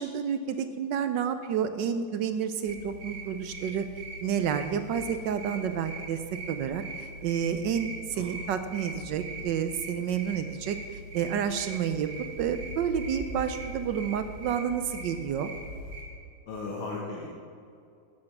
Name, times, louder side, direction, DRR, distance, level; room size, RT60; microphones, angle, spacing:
voice 1, 0.0-3.9 4.2-6.2 6.5-12.1 12.4-15.5, right 8 dB, 70° right, 9 dB, 1.2 m, -30 dB
sound 1, 2.7-16.0, right 2 dB, 45° right, 3.0 m, -41 dB
voice 2, 16.5-17.3, left 3 dB, 85° left, -2 dB, 2.3 m, -36 dB
12.0 x 8.7 x 6.1 m, 2.4 s
omnidirectional pair, 2.3 m